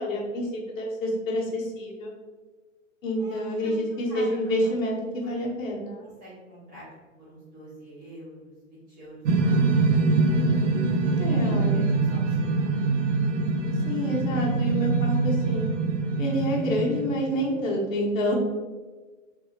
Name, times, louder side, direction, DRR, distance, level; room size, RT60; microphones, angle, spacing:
voice 1, 0.0-2.1 3.0-6.0 11.2-11.9 13.8-15.7 16.2-18.3, equal, 80° left, -3 dB, 1.2 m, -28 dB
voice 2, 3.2-3.8 4.1-4.7 5.2-5.4 6.0-6.8 7.2-10.1 10.9-12.7, right 1 dB, 20° right, -10 dB, 1.4 m, -42 dB
sound 1, 9.3-17.7, right 3 dB, 65° right, 0.5 m, -24 dB
3.4 x 2.7 x 2.8 m, 1.3 s
hypercardioid pair, 170°, 39 cm